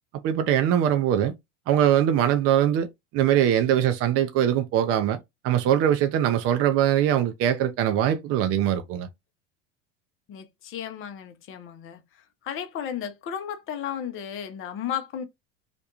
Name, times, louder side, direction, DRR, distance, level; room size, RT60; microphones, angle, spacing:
voice 1, 0.2-1.3 1.7-2.9 3.1-5.2 5.4-9.1, right 10 dB, 40° right, 0.5 m, -22 dB
voice 2, 10.3-12.0 12.4-15.2, left 9 dB, 35° left, 0.6 m, -34 dB
2.5 x 2.2 x 2.9 m
hypercardioid pair, 85°, 36 cm